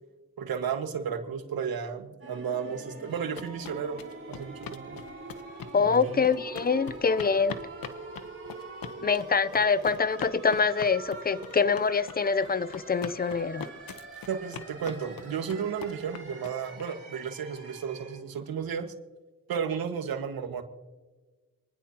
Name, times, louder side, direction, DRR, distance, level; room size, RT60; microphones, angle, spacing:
voice 1, 0.4-4.0 4.3-5.0 5.8-6.2 14.3-18.9 19.5-20.6, right 7 dB, 80° right, 1.7 m, -33 dB
sound 1, 2.2-18.2, right 3 dB, 40° right, 4.5 m, -44 dB
sound 2, 3.0-16.8, left 7 dB, 75° left, 1.1 m, -42 dB
voice 2, 5.7-7.6 9.0-13.7, left 5 dB, 25° left, 0.7 m, -25 dB
28.0 x 10.0 x 3.0 m
cardioid pair, 60°, 35 cm